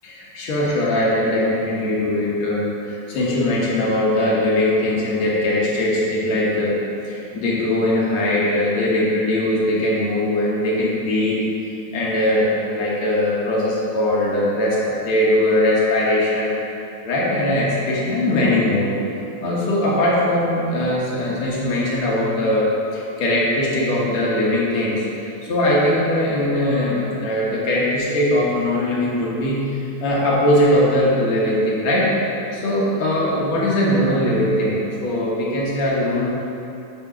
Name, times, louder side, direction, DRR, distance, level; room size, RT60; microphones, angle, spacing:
voice 1, 0.0-11.4 11.9-16.5 17.0-19.0 19.4-32.1 32.5-36.3, left 1 dB, 70° left, -5 dB, 2.4 m, -20 dB
8.5 x 4.0 x 6.0 m, 2.7 s
omnidirectional pair, 3.4 m